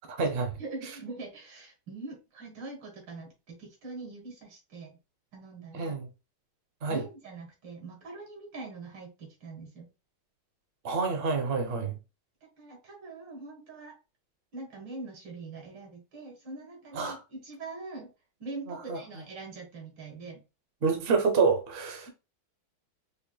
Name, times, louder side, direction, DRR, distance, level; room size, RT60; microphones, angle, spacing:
voice 1, 0.1-0.5 5.7-6.1 6.8-7.0 10.8-12.0 16.9-17.2 18.7-19.2 20.8-22.1, right 4 dB, 85° right, 0.5 m, -28 dB
voice 2, 0.6-4.9 5.3-6.0 6.9-9.9 11.6-11.8 12.6-13.9 14.5-18.1 18.4-20.4 22.1-22.2, right 3 dB, 60° right, 2.1 m, -43 dB
4.7 x 3.2 x 2.2 m
omnidirectional pair, 2.3 m